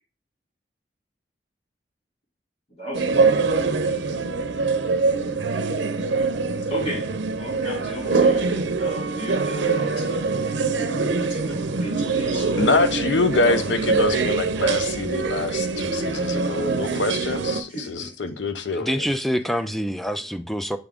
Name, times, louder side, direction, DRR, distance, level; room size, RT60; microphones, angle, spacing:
voice 1, 2.7-3.3 6.7-10.3 10.7-12.6 17.7-18.5 19.5-19.7, equal, 45° left, 2.6 m, -35 dB
sound 1, 2.9-17.6, right 4 dB, 85° right, 0.6 m, -24 dB
voice 2, 12.6-19.1, left 3 dB, 85° left, 0.7 m, -25 dB
voice 3, 18.7-20.8, equal, ahead, 0.4 m, -26 dB
8.0 x 3.7 x 3.5 m
head